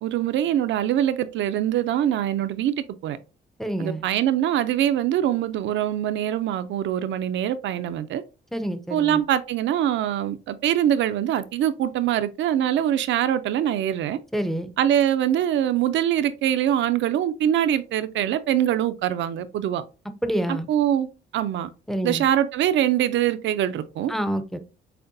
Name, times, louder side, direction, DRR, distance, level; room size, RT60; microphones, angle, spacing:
voice 1, 0.0-2.7 3.0-3.2 3.8-8.2 8.9-14.2 14.8-19.8 20.5-21.1 21.3-21.7 22.0-24.1, right 11 dB, 70° right, 0.4 m, -23 dB
voice 2, 3.6-4.1 8.5-9.2 14.3-14.7 20.2-20.7 21.9-22.3 24.1-24.6, right 1 dB, ahead, 0.5 m, -27 dB
6.6 x 2.2 x 2.5 m
cardioid pair, 90°, 20 cm